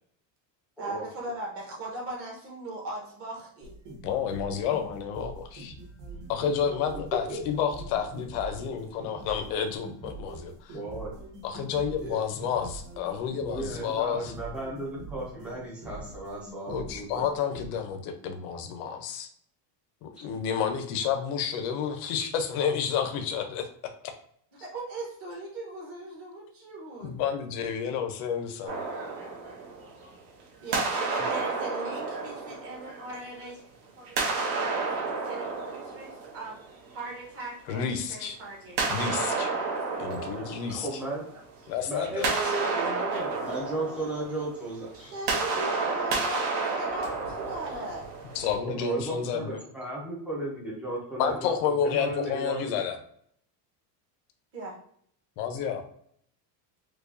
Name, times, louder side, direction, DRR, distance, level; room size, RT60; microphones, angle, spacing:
voice 1, 0.8-3.7 24.6-27.1 30.6-33.6 34.0-38.8 44.9-48.1 54.5-54.7, right 1 dB, 30° right, -3 dB, 1.0 m, -39 dB
sound 1, 3.6-17.7, right 2 dB, 45° right, 1.4 m, -44 dB
voice 2, 4.0-5.7 6.3-10.8 11.4-14.3 16.7-19.3 20.0-23.7 24.0-24.1 27.0-28.8 37.7-38.4 38.9-39.5 40.0-40.9 41.7-42.3 48.3-49.6 51.2-53.0 55.4-55.8, left 7 dB, 70° left, 5 dB, 0.7 m, -30 dB
voice 3, 7.1-7.4 10.7-11.1 12.0-12.2 13.4-17.3 40.2-41.2 41.9-45.1 45.5-45.6 48.6-51.6 51.8-52.8, right 2 dB, 5° right, -5 dB, 0.4 m, -35 dB
sound 2, 28.7-30.3 30.7-33.5 34.1-36.9 38.8-41.5 41.9-48.5, right 4 dB, 65° right, 1.1 m, -31 dB
4.6 x 2.3 x 2.5 m, 0.65 s
cardioid pair, 180°, 50 cm